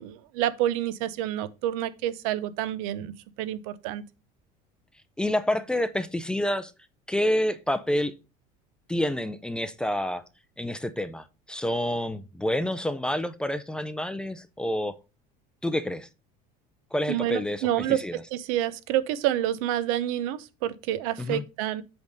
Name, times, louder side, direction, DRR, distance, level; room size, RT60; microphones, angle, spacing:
voice 1, 0.0-3.1 3.4-4.0 17.1-21.8, right 12 dB, 85° right, 0.7 m, -28 dB
voice 2, 5.2-6.7 7.1-8.1 8.9-10.2 10.6-14.9 15.6-16.1 16.9-17.7 18.0-18.2 21.2-21.4, left 1 dB, 5° left, 0.4 m, -28 dB
8.0 x 3.5 x 5.2 m
cardioid pair, 150°, 17 cm